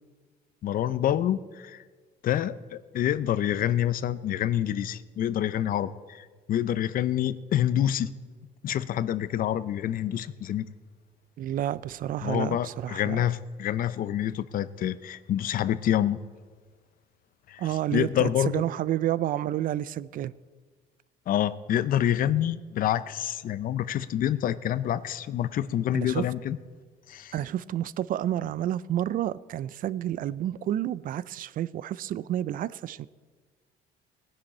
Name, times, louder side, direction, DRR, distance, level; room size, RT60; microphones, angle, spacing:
voice 1, 0.6-1.8 2.2-8.1 8.6-10.7 12.2-16.2 17.5-18.6 21.3-26.6 27.1-27.3, left 11 dB, 55° left, 0.6 m, -27 dB
voice 2, 11.4-13.3 17.6-20.3 25.9-26.2 27.3-33.1, right 12 dB, 55° right, 0.4 m, -30 dB
18.5 x 10.5 x 4.3 m
cardioid pair, 110°, 17 cm